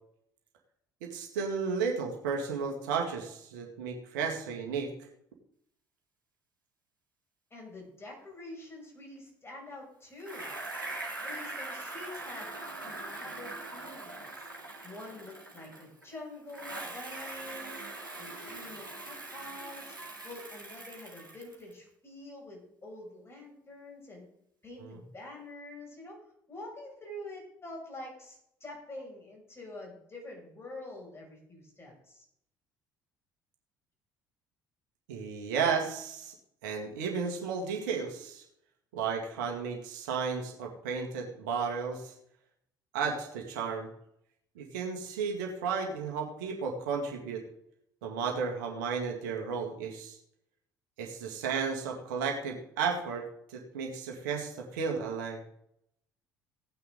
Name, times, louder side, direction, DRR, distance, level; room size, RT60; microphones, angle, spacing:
voice 1, 1.0-4.9 24.8-25.0 35.1-36.3 36.6-38.4 38.9-42.1 42.9-43.9 44.6-47.4 48.0-50.2 51.0-55.4, right 5 dB, 65° right, 1 dB, 2.1 m, -33 dB
voice 2, 7.5-10.5 11.2-12.5 12.8-14.3 14.8-17.8 18.2-20.0 20.2-24.3 24.6-26.2 26.5-32.2, left 1 dB, 25° left, 0 dB, 6.3 m, -46 dB
Bicycle, 10.2-16.1 16.5-21.7, right 2 dB, 85° right, 2.0 m, -42 dB
16.5 x 9.7 x 3.8 m, 0.74 s
figure-of-eight pair, 55°, 11 cm